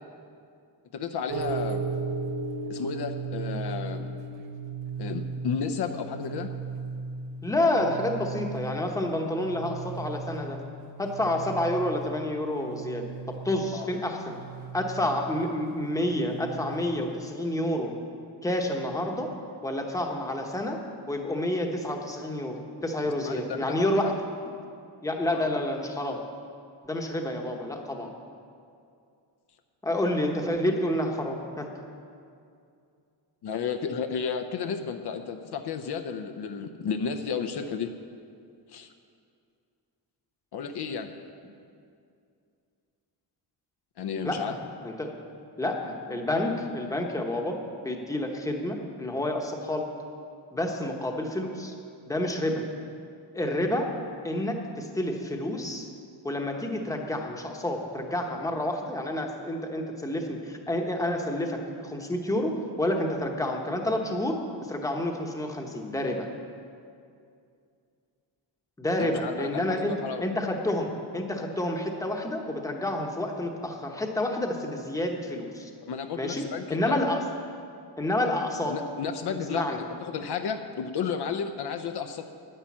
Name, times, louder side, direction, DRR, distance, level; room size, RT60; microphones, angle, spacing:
voice 1, 0.9-1.9 2.7-4.1 5.0-6.5 13.7-13.9 23.2-24.1 25.2-25.5 33.4-37.9 38.7-38.9 40.5-41.1 44.0-44.6 69.0-70.3 75.8-77.0 78.7-82.3, left 6 dB, 60° left, 7 dB, 0.7 m, -33 dB
sound 1, 1.3-17.2, right 4 dB, 75° right, 1.2 m, -37 dB
voice 2, 7.4-10.6 11.0-13.1 13.4-14.4 14.7-17.9 18.4-19.3 19.6-20.8 21.1-24.1 25.0-26.2 26.8-28.1 29.8-31.7 44.2-44.6 44.8-45.1 45.6-47.6 47.8-49.9 50.5-51.7 52.1-52.6 53.3-53.9 54.2-55.9 56.2-64.4 64.7-66.3 68.8-75.7 76.2-77.2 78.0-78.7 79.3-79.8, left 1 dB, 5° left, 2 dB, 1.0 m, -29 dB
10.0 x 10.0 x 7.3 m, 2.4 s
wide cardioid pair, 165°, 45 cm